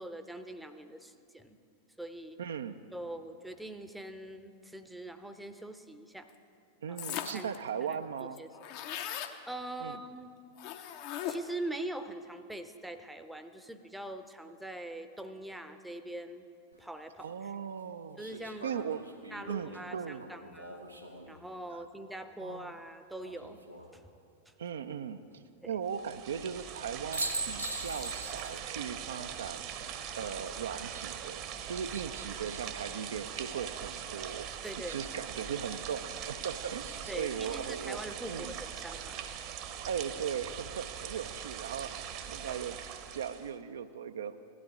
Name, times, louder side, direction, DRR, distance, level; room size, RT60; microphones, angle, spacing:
voice 1, 0.0-1.6 2.0-2.4 2.9-6.3 6.9-7.5 7.9-8.0 8.4-8.5 9.5-10.3 11.3-16.5 16.8-17.3 18.2-18.7 19.3-20.8 21.3-23.6 23.9-24.0 24.5-24.6 25.6-25.8 34.6-35.0 37.1-39.2, right 1 dB, 5° right, 8 dB, 0.7 m, -43 dB
voice 2, 2.4-2.8 6.8-8.4 9.8-10.0 17.2-19.0 19.5-20.3 21.7-21.8 22.4-22.7 24.6-31.4 31.7-34.5 34.9-38.0 38.3-38.6 39.9-42.8 43.1-44.4, right 7 dB, 65° right, 10 dB, 0.4 m, -38 dB
sound 1, 7.0-7.6 7.9-8.0 8.2-9.4 10.6-11.6, left 10 dB, 45° left, 0.7 m, -38 dB
sound 2, 16.7-16.8 18.2-21.4 23.2-23.9 26.7-26.8 27.1-28.7 29.0-29.1 31.4-31.9, right 2 dB, 90° right, 1.1 m, -41 dB
sound 3, 25.9-43.5, right 8 dB, 40° right, 0.9 m, -41 dB
16.5 x 12.0 x 3.6 m, 2.4 s
figure-of-eight pair, 90°, 0 cm